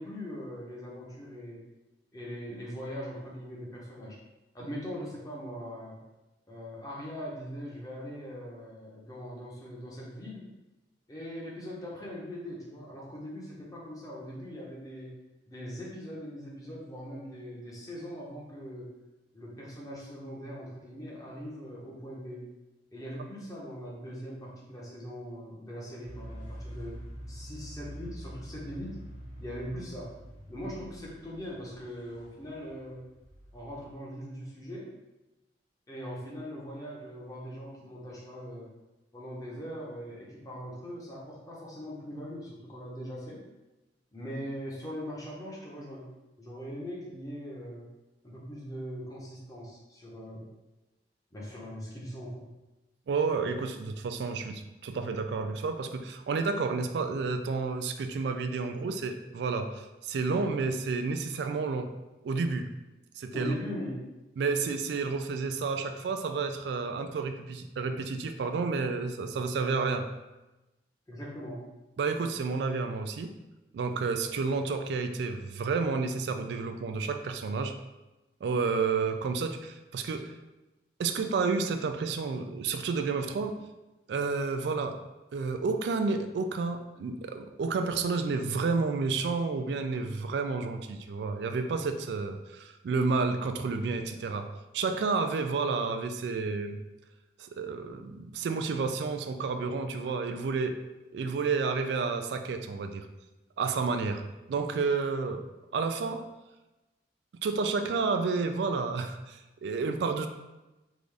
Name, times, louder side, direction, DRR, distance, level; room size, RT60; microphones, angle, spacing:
voice 1, 0.0-1.6 2.1-4.2 4.5-6.0 6.5-10.5 11.1-15.1 15.5-18.9 19.3-22.4 22.9-27.0 27.3-29.0 29.4-30.1 30.5-33.0 33.5-34.9 35.9-38.7 39.1-43.4 44.1-46.1 46.4-47.8 48.2-50.4 51.3-52.5 63.3-64.0 71.1-71.6, equal, 20° left, -5 dB, 0.8 m, -41 dB
sound 1, 26.0-33.9, equal, 45° left, 1.0 m, -45 dB
voice 2, 53.1-61.9 62.2-62.7 63.2-63.5 64.4-70.1 72.0-73.3 73.7-77.7 78.4-80.3 81.0-83.6 84.1-85.0 85.3-94.5 94.7-96.8 97.4-100.8 101.1-103.0 103.6-104.2 104.5-105.4 105.7-106.2 107.4-110.3, right 4 dB, 70° right, 7 dB, 0.3 m, -30 dB
3.6 x 2.6 x 3.2 m, 1.0 s
head